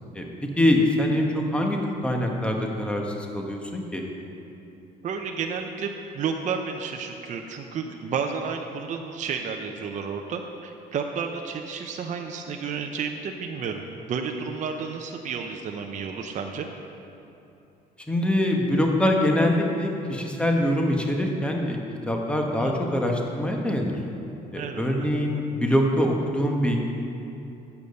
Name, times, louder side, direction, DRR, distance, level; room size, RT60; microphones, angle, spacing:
voice 1, 0.6-4.1 18.1-21.8 22.1-24.0 24.5-26.8, left 1 dB, 5° left, 1 dB, 1.1 m, -24 dB
voice 2, 5.0-13.8 14.1-16.7 22.5-22.8 24.5-25.1, right 6 dB, 45° right, 3 dB, 0.7 m, -31 dB
9.1 x 7.0 x 6.5 m, 2.9 s
cardioid pair, 110°, 17 cm